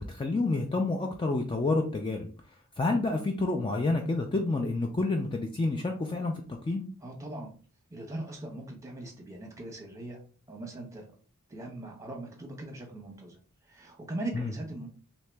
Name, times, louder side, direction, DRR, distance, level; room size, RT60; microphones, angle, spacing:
voice 1, 0.0-2.3 2.8-6.9 14.3-14.5, left 2 dB, 20° left, 3 dB, 0.3 m, -29 dB
voice 2, 7.0-7.5 7.9-10.2 10.5-11.1 11.5-13.4 13.7-14.9, right 2 dB, 15° right, 0 dB, 0.9 m, -40 dB
3.1 x 2.8 x 3.3 m, 0.39 s
head